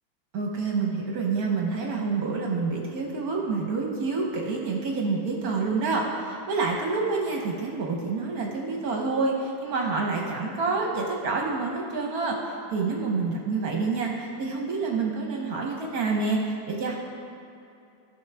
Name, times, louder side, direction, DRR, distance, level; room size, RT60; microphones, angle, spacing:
voice 1, 0.3-17.0, right 4 dB, 60° right, 0 dB, 1.0 m, -28 dB
14.0 x 6.1 x 3.4 m, 2.7 s
omnidirectional pair, 2.3 m